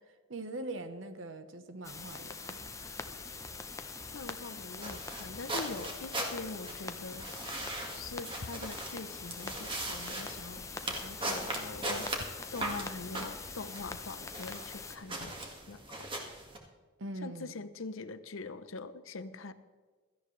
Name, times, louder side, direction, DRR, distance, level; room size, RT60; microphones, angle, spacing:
voice 1, 0.3-2.7 17.0-17.6, right 2 dB, 70° right, 9 dB, 1.1 m, -42 dB
sound 1, 1.8-15.0, left 4 dB, 15° left, 0.7 m, -44 dB
sound 2, 2.6-14.0, equal, 5° right, 1.9 m, -55 dB
voice 2, 4.1-7.3 7.9-16.1 17.2-19.5, left 3 dB, 75° left, 12 dB, 0.8 m, -43 dB
sound 3, 4.8-16.6, right 1 dB, 25° right, 1.9 m, -40 dB
17.0 x 13.5 x 3.3 m, 1.4 s
head